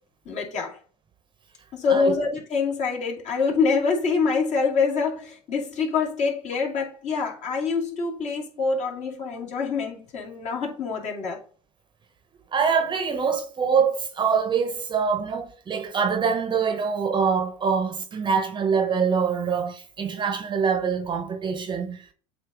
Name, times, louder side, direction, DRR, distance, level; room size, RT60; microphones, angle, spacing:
voice 1, 0.3-0.8 1.7-11.4, left 5 dB, 45° left, 2.4 m, -25 dB
voice 2, 12.5-22.1, right 6 dB, 30° right, 1.0 m, -24 dB
7.7 x 2.7 x 4.8 m
supercardioid pair, 105°, 16 cm